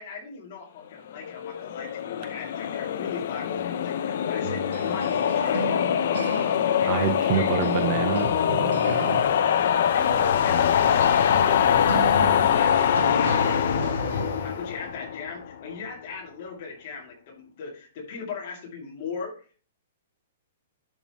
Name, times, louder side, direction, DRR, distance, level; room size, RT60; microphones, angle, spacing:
voice 1, 0.0-5.9 6.5-7.8 9.9-11.9 12.4-13.0 14.1-19.4, left 5 dB, 35° left, -2 dB, 2.5 m, -39 dB
sound 1, 1.2-15.5, left 8 dB, 50° left, 0.6 m, -23 dB
sound 2, 4.4-7.9 8.1-14.5, right 7 dB, 70° right, 0.6 m, -38 dB
voice 2, 6.8-9.2, right 9 dB, 25° right, 7 dB, 0.6 m, -28 dB
sound 3, 7.8-12.8 13.2-14.7, left 2 dB, 75° left, 3.9 m, -36 dB
11.0 x 5.6 x 3.0 m, 0.39 s
hypercardioid pair, 180°, 0 cm